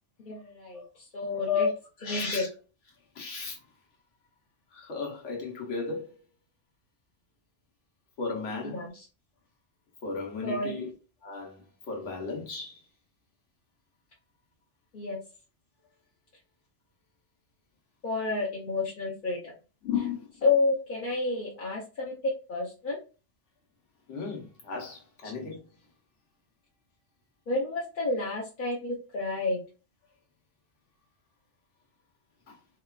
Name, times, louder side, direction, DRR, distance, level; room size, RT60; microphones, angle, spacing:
voice 1, 0.2-1.7 2.0-2.5 8.6-9.1 10.4-10.7 14.9-15.2 18.0-19.5 20.4-23.0 27.5-29.6, left 3 dB, 50° left, 0.7 m, -30 dB
voice 2, 2.0-2.5 3.2-3.5 4.7-6.0 8.2-8.7 10.0-10.9 11.2-11.6 11.9-12.8 19.8-20.3 24.1-25.6, left 5 dB, 80° left, 1.2 m, -33 dB
2.8 x 2.3 x 2.3 m
omnidirectional pair, 1.2 m